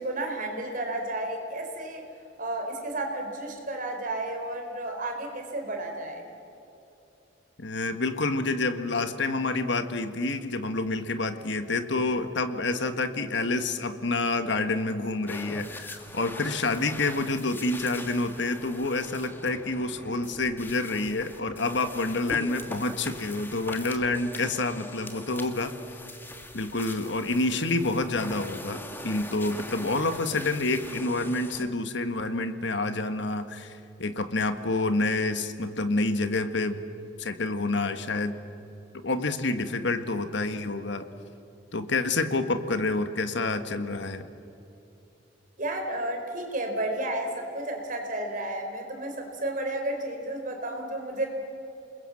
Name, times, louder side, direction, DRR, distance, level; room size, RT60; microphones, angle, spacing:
voice 1, 0.0-2.0 2.4-6.2 45.6-51.3, right 1 dB, 45° right, 3 dB, 4.3 m, -32 dB
voice 2, 7.6-25.7 26.5-36.8 37.2-38.4 39.0-41.0 41.7-44.2, left 2 dB, 65° left, 9 dB, 1.6 m, -28 dB
sound 1, 15.3-31.7, left 1 dB, 10° left, 2.0 m, -42 dB
29.0 x 21.5 x 7.7 m, 2.8 s
head